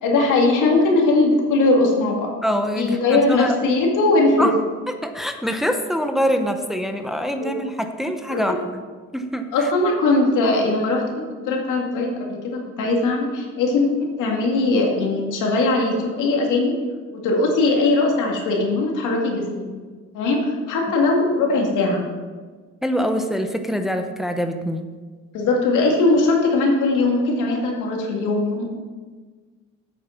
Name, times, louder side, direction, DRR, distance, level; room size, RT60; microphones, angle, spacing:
voice 1, 0.0-2.3 2.8-4.5 7.4-7.5 8.3-8.4 9.5-13.9 14.2-16.8 17.1-19.7 20.1-22.0 25.3-28.7, left 2 dB, 85° left, 0 dB, 2.1 m, -20 dB
voice 2, 2.4-3.6 4.4-4.6 4.9-8.6 9.1-9.7 22.8-24.9, equal, ahead, 6 dB, 0.8 m, -24 dB
8.5 x 7.6 x 5.8 m, 1.4 s
cardioid pair, 90°, 30 cm